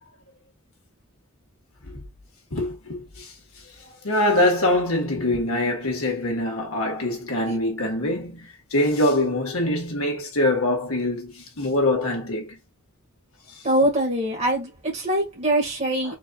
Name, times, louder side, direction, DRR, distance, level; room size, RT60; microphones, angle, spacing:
voice 1, 2.5-3.3 4.0-12.6 13.5-13.6 16.0-16.1, left 1 dB, 75° left, 1.7 m, -24 dB
voice 2, 13.6-16.1, right 1 dB, 30° right, 2.0 m, -23 dB
4.5 x 4.1 x 2.4 m
head